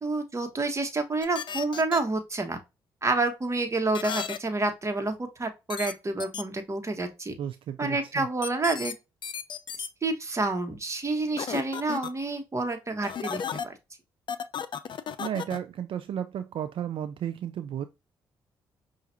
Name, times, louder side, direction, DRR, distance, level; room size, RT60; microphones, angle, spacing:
voice 1, 0.0-2.6 3.0-7.3 7.8-8.9 10.0-13.4 13.6-13.7, right 3 dB, 30° right, 1.2 m, -28 dB
sound 1, 1.2-2.0 3.9-4.4 5.7-5.9 6.2-6.4 8.4-8.9 9.2-9.9 11.4-12.1 13.0-13.7 14.3-15.6, left 7 dB, 55° left, 0.5 m, -34 dB
voice 2, 7.4-8.3 15.2-17.9, right 9 dB, 65° right, 0.4 m, -33 dB
5.7 x 2.5 x 2.6 m
supercardioid pair, 60°, 10 cm